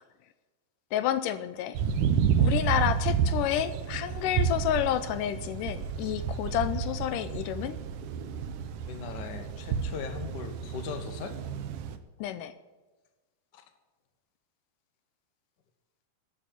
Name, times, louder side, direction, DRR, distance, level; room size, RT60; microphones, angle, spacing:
voice 1, 0.9-1.8 2.4-7.8 12.2-12.5, left 11 dB, 80° left, 12 dB, 2.2 m, -30 dB
sound 1, 1.7-12.0, right 7 dB, 75° right, 2.3 m, -30 dB
voice 2, 8.9-11.4 13.5-13.6, left 5 dB, 50° left, 7 dB, 1.4 m, -39 dB
12.5 x 7.6 x 9.9 m, 1.2 s
omnidirectional pair, 3.9 m